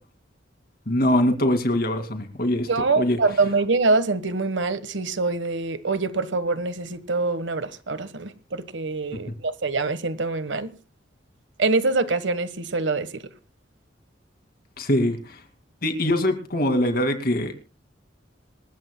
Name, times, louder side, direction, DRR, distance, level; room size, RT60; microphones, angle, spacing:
voice 1, 0.9-2.7 3.0-3.2 9.1-9.3 14.8-15.4 15.8-17.5, left 1 dB, 55° left, 2.3 m, -23 dB
voice 2, 2.7-10.7 11.6-13.2, right 3 dB, 80° right, 1.3 m, -24 dB
27.0 x 13.5 x 2.2 m
head